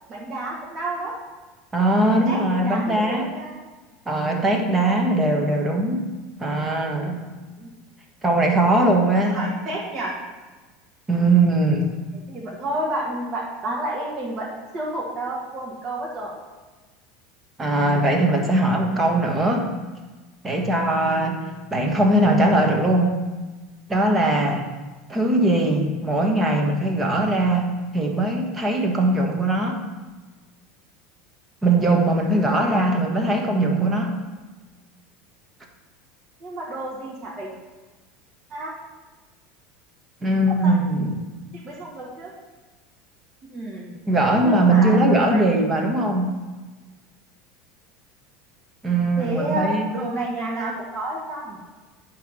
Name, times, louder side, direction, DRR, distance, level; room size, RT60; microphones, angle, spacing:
voice 1, 0.1-1.1 2.0-3.6 7.6-7.7 9.3-10.1 12.1-16.3 32.4-33.0 36.4-37.5 38.5-38.7 40.5-40.8 41.6-42.3 43.5-44.0 44.4-45.5 49.2-51.6, right 1 dB, 35° right, -5 dB, 1.8 m, -30 dB
voice 2, 1.7-3.3 4.0-6.0 6.4-7.2 8.2-9.4 11.1-11.9 17.6-19.6 20.4-21.4 21.7-23.2 23.9-24.6 25.1-29.8 31.6-34.1 40.2-41.2 44.1-46.3 48.8-49.9, right 2 dB, 20° right, 1 dB, 1.6 m, -20 dB
9.9 x 3.4 x 5.6 m, 1.3 s
hypercardioid pair, 95°, 0 cm